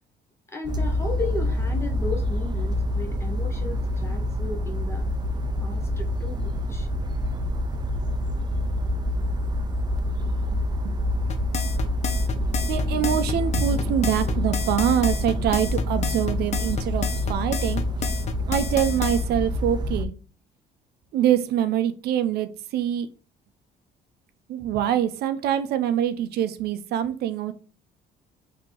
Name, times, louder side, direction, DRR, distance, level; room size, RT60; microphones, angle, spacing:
voice 1, 0.5-5.1 5.6-6.9, left 2 dB, 15° left, 2 dB, 1.1 m, -35 dB
sound 1, 0.6-20.0, left 1 dB, 25° right, 0.5 m, -26 dB
sound 2, 11.3-19.2, left 6 dB, 40° left, 0.6 m, -31 dB
voice 2, 12.7-18.1 18.5-20.1 21.1-23.1 24.5-27.5, right 10 dB, 70° right, 11 dB, 0.5 m, -25 dB
3.8 x 2.8 x 4.6 m, 0.36 s
cardioid pair, 110°, 17 cm